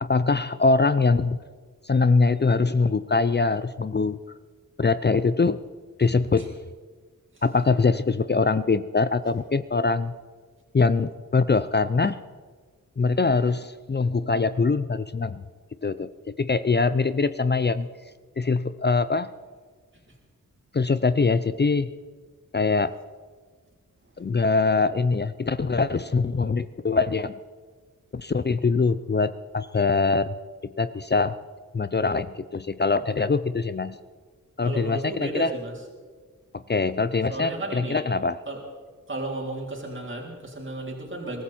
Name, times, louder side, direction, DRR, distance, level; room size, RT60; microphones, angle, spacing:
voice 1, 0.0-1.4 1.9-4.2 4.8-5.6 6.0-6.5 7.4-10.1 10.7-12.2 13.0-15.4 15.8-16.1 16.4-17.9 18.4-19.3 20.7-21.9 22.5-22.9 24.2-27.3 28.1-30.3 30.8-31.3 31.7-34.0 34.6-35.5 36.7-38.4, left 4 dB, 30° left, 13 dB, 0.6 m, -23 dB
voice 2, 34.6-35.7 37.3-38.0 38.5-38.6 39.1-41.4, right 2 dB, 35° right, -2 dB, 3.8 m, -33 dB
22.5 x 14.0 x 4.4 m, 1.5 s
cardioid pair, 45°, 33 cm